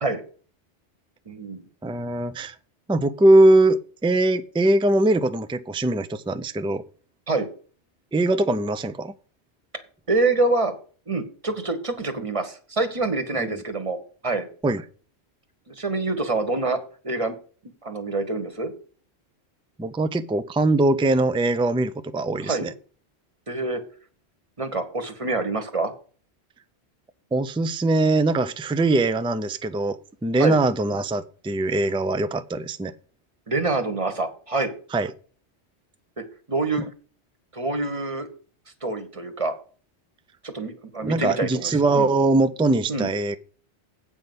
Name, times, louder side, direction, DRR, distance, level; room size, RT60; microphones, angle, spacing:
voice 1, 1.3-1.6 7.3-7.5 10.1-10.7 11.1-14.0 14.2-14.5 15.7-17.3 17.8-18.7 22.4-22.7 23.5-23.8 24.6-25.9 30.4-30.6 33.5-34.7 36.2-36.9 37.5-38.3 38.8-39.5 40.4-42.1 42.9-43.1, right 3 dB, 30° right, 1.3 m, -26 dB
voice 2, 1.8-2.6 2.9-6.8 8.1-9.1 13.4-13.6 14.6-14.8 19.8-22.7 27.3-30.0 30.2-32.9 34.9-35.1 41.0-43.4, right 2 dB, 10° right, 0.3 m, -21 dB
8.4 x 5.4 x 7.8 m
omnidirectional pair, 1.1 m